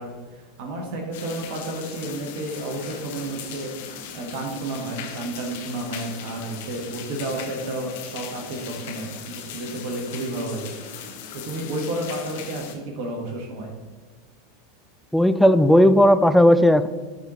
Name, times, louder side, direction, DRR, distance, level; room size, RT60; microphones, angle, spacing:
voice 1, 0.0-10.7 11.3-13.7, right 2 dB, 55° right, 1 dB, 1.2 m, -31 dB
sound 1, 1.1-12.7, left 7 dB, 60° left, 0.9 m, -38 dB
voice 2, 15.1-16.9, equal, ahead, 11 dB, 0.4 m, -15 dB
12.0 x 4.0 x 3.0 m, 1.4 s
figure-of-eight pair, 85°, 0 cm